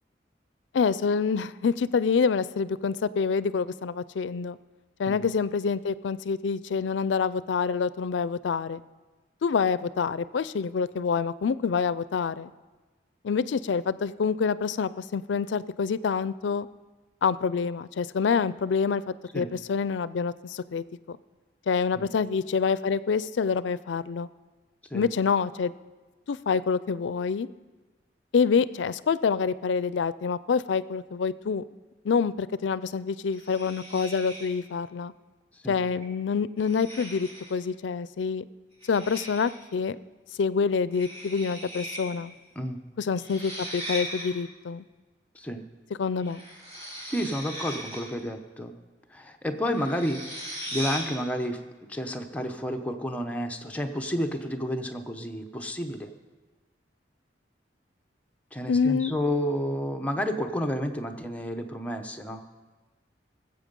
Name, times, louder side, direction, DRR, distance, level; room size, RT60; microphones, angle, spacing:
voice 1, 0.7-4.6 5.0-8.8 9.4-12.5 13.2-16.7 17.2-21.2 21.7-24.3 24.9-25.7 26.3-27.5 28.3-31.6 32.0-35.1 35.7-38.4 38.9-40.0 40.4-42.3 43.0-44.8 46.0-46.4 58.7-59.2, left 5 dB, 85° left, 17 dB, 0.4 m, -27 dB
sound 1, 33.3-34.6 35.8-36.0 36.6-37.6 38.8-39.6 40.9-42.0 42.3-42.4 43.2-44.3 46.2-48.2 49.7-51.2, equal, 35° right, 3.8 m, -38 dB
voice 2, 47.1-48.7 49.1-50.2 50.7-51.6 51.9-56.1 58.5-62.4, equal, 10° left, 4 dB, 0.8 m, -30 dB
19.5 x 7.9 x 5.3 m, 1.3 s
head